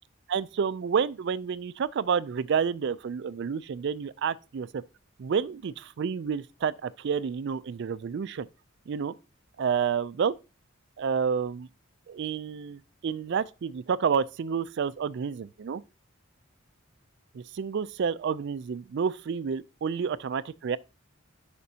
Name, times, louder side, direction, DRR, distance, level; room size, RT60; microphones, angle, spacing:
voice 1, 0.3-4.8 5.2-8.5 8.9-9.1 9.6-10.3 11.0-11.7 12.1-15.8 17.3-20.8, right 6 dB, 55° right, 0.3 m, -29 dB
11.0 x 5.2 x 2.8 m
head